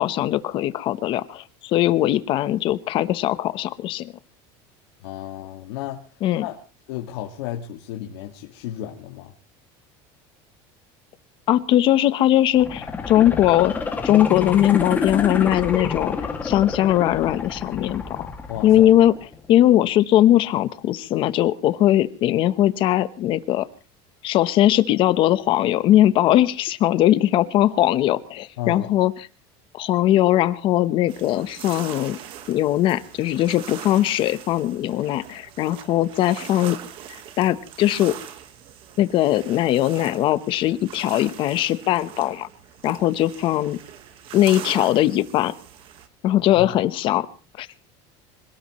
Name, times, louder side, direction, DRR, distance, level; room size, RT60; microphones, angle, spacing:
voice 1, 0.0-4.1 6.2-6.4 11.5-13.7 14.0-16.2 16.4-18.3 18.6-19.1 19.5-23.7 24.2-29.1 29.7-32.2 32.5-36.8 37.4-38.1 39.0-42.5 42.8-43.8 44.3-45.5 46.2-47.3 47.6-47.7, left 13 dB, 40° left, 13 dB, 1.0 m, -20 dB
voice 2, 5.0-6.0 6.3-9.3 18.5-18.9 28.6-28.9 46.5-46.7, left 11 dB, 85° left, 1 dB, 2.0 m, -33 dB
sound 1, 12.5-19.5 19.9-20.0, left 4 dB, 15° left, 2.2 m, -29 dB
sound 2, 31.1-46.1, right 9 dB, 40° right, 1.5 m, -41 dB
25.5 x 18.0 x 3.1 m, 0.36 s
cardioid pair, 170°, 14 cm